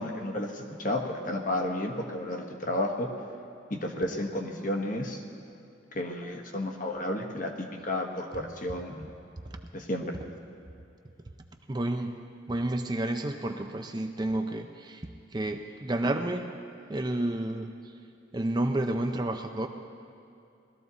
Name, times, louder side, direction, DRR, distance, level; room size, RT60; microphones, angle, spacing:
voice 1, 0.0-3.1 3.7-5.2 5.9-9.1 9.7-10.2, left 1 dB, 40° left, 2 dB, 1.3 m, -32 dB
voice 2, 11.7-12.2 12.5-16.5 16.9-17.7 18.3-19.7, right 1 dB, 20° right, 5 dB, 0.5 m, -30 dB
20.0 x 13.5 x 4.1 m, 2.6 s
head